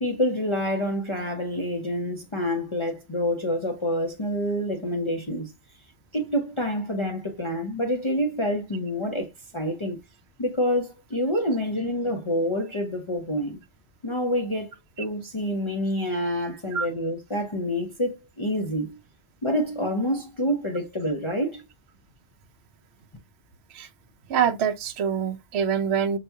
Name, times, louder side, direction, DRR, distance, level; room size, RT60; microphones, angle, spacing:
voice 1, 0.0-5.5 6.1-10.0 10.4-13.6 14.0-19.0 19.4-21.6, equal, 35° left, 0.6 m, -27 dB
voice 2, 24.3-26.2, right 8 dB, 70° right, 0.8 m, -25 dB
5.7 x 2.3 x 2.7 m
omnidirectional pair, 1.2 m